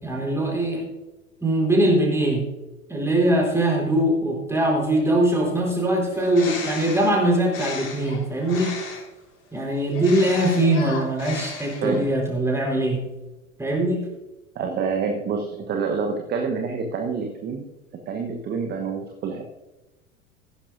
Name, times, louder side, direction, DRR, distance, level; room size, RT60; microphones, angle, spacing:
voice 1, 0.0-0.8 1.4-2.4 2.9-8.8 9.5-13.0 13.6-14.0, right 1 dB, 5° right, -1 dB, 4.2 m, -22 dB
Bird, 6.1-9.2 9.9-12.1, left 4 dB, 40° left, 4.1 m, -35 dB
voice 2, 14.5-17.7 17.9-19.4, right 5 dB, 25° right, 4 dB, 1.1 m, -27 dB
15.0 x 12.0 x 2.6 m, 1.1 s
figure-of-eight pair, 85°, 40 cm